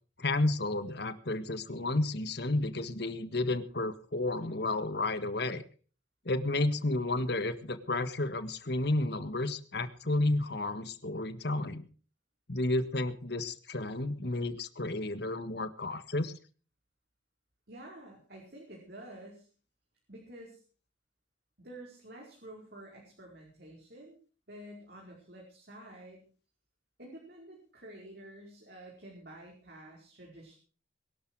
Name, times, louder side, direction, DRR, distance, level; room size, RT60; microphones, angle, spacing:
voice 1, 0.2-5.6 6.2-11.8 12.5-16.3, left 2 dB, 60° left, 11 dB, 1.6 m, -31 dB
voice 2, 17.7-19.5 20.1-20.6 21.6-24.2 24.5-26.2 27.0-30.6, right 1 dB, 55° right, -1 dB, 4.9 m, -49 dB
22.0 x 12.5 x 4.8 m, 0.40 s
head